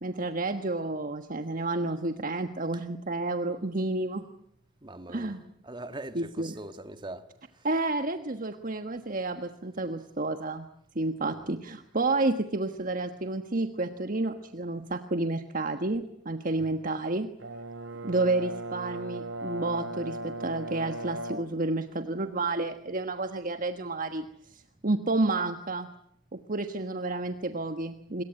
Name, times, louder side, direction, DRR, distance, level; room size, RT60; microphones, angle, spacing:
voice 1, 0.0-4.3 5.1-5.4 6.1-6.6 7.6-10.6 10.9-17.3 18.0-25.9 26.3-28.2, right 2 dB, 45° right, 1.4 m, -30 dB
voice 2, 4.8-7.3 11.3-11.4, right 2 dB, 25° right, 1.8 m, -42 dB
Brass instrument, 17.4-21.6, right 1 dB, 80° right, 3.6 m, -37 dB
27.0 x 22.0 x 8.8 m
head